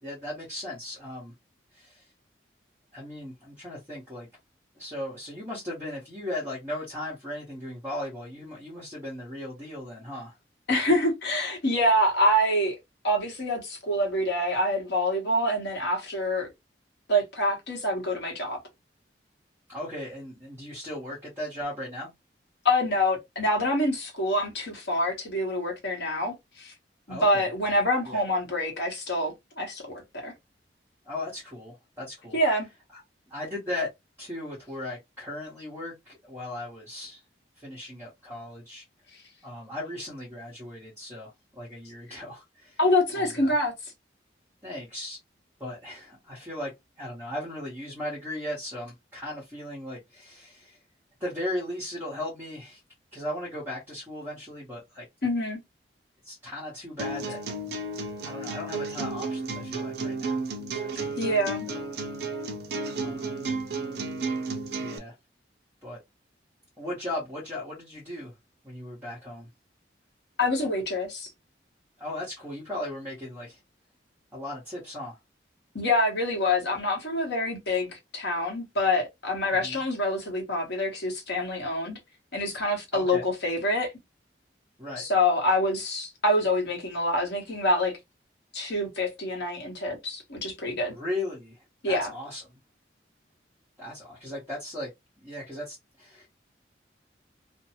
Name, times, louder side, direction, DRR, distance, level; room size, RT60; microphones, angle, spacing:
voice 1, 0.0-1.3 1.7-2.1 2.9-4.3 4.7-10.4 19.7-22.1 27.1-27.5 28.0-28.2 31.0-32.4 32.9-33.0 33.3-33.9 34.2-37.2 37.6-38.8 39.4-42.8 43.1-43.6 44.6-45.2 45.6-46.7 47.0-50.8 51.2-52.8 53.1-55.0 56.2-57.4 58.2-60.4 60.7-61.3 61.7-61.8 63.0-63.4 64.8-65.1 65.8-66.0 66.8-68.3 68.6-69.5 72.0-73.6 74.3-75.2 79.6-79.8 82.9-83.2 84.8-85.0 90.9-92.6 93.8-94.9 95.2-96.3, left 1 dB, 10° right, 1.0 m, -37 dB
voice 2, 10.7-12.8 13.0-16.5 17.1-18.6 22.6-26.7 27.1-30.3 32.3-32.7 42.8-43.7 55.2-55.6 60.9-61.7 70.4-71.3 75.7-82.0 82.3-83.9 85.0-87.9 88.5-90.9 91.8-92.1, left 1 dB, 65° left, 1.1 m, -26 dB
sound 1, 57.0-65.0, right 3 dB, 60° right, 0.6 m, -32 dB
2.6 x 2.2 x 2.8 m
head